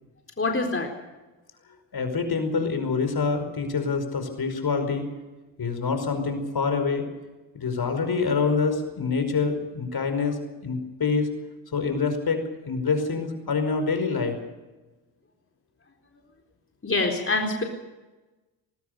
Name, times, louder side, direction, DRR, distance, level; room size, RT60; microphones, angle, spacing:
voice 1, 0.4-0.9 16.8-17.6, left 3 dB, 25° left, 1 dB, 4.1 m, -25 dB
voice 2, 1.9-5.1 5.6-7.1 7.5-11.3 11.7-14.4, left 4 dB, 50° left, 8 dB, 5.2 m, -26 dB
19.5 x 19.5 x 6.8 m, 1.1 s
supercardioid pair, 55°, 46 cm